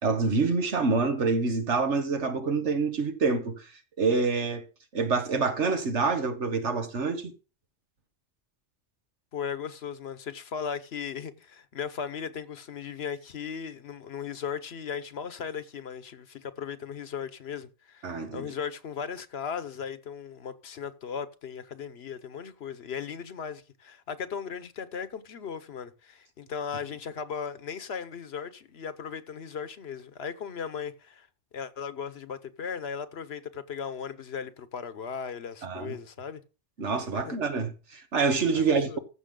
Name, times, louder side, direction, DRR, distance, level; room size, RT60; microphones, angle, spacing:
voice 1, 0.0-3.6 4.0-4.6 4.9-7.3 18.0-18.5 35.6-36.0 36.8-39.0, right 4 dB, 85° right, 1.7 m, -26 dB
voice 2, 9.3-31.3 31.5-36.4 37.3-37.4 38.5-39.0, left 7 dB, 65° left, 1.1 m, -37 dB
15.0 x 6.1 x 3.8 m
omnidirectional pair, 1.2 m